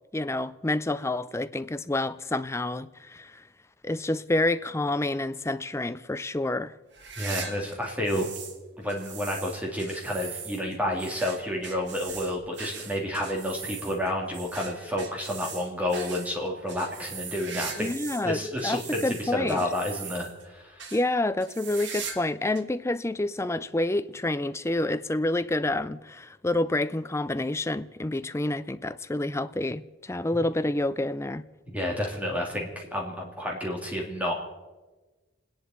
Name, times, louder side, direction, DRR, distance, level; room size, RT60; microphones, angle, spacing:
voice 1, 0.1-3.4 3.8-6.7 17.8-19.6 20.9-31.4, left 2 dB, 15° left, 0.5 m, -28 dB
sound 1, 6.9-8.6 8.9-18.3 18.6-20.4 20.8-21.0 21.4-22.3 22.5-22.6 23.4-23.5 24.8-24.9, right 6 dB, 60° right, 1.5 m, -40 dB
voice 2, 7.2-8.3 8.8-17.9 18.2-20.9 30.3-30.4 31.7-34.3, left 1 dB, 5° right, 2.9 m, -30 dB
29.5 x 10.5 x 4.5 m
head